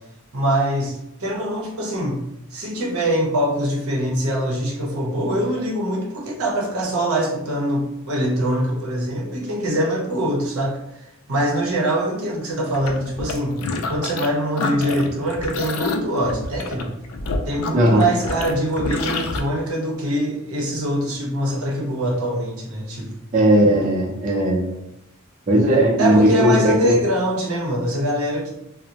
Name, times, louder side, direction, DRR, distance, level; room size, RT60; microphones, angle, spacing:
voice 1, 0.3-2.2 2.5-10.8 11.3-13.6 13.9-16.9 17.5-23.1 26.0-28.5, right 1 dB, 80° right, -1 dB, 0.7 m, -23 dB
sound 1, 12.7-14.3 14.6-19.4, left 3 dB, 90° left, 0.4 m, -28 dB
voice 2, 17.7-18.0 23.3-24.6 25.5-27.0, equal, 35° right, -3 dB, 0.5 m, -17 dB
2.5 x 2.0 x 2.8 m, 0.83 s
head